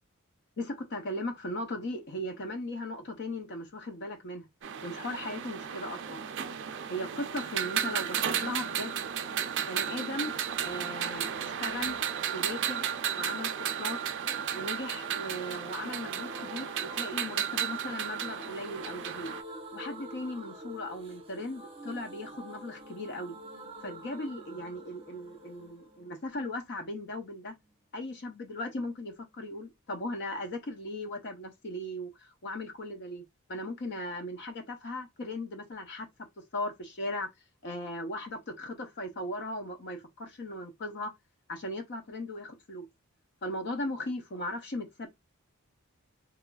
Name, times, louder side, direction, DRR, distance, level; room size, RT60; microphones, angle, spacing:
voice 1, 0.6-4.4 4.8-6.3 6.9-9.0 9.6-10.3 10.6-12.0 12.3-12.9 13.1-14.0 14.5-19.3 19.7-23.4 23.8-27.6 27.9-36.1 36.5-37.3 37.6-41.1 41.5-42.9 43.4-45.1, left 1 dB, 50° left, 0.6 m, -37 dB
sound 1, 4.6-19.4, right 9 dB, 55° right, 0.4 m, -34 dB
sound 2, 14.1-27.7 28.0-28.1 28.3-28.4, right 1 dB, 25° right, 0.7 m, -48 dB
3.0 x 2.4 x 2.2 m
head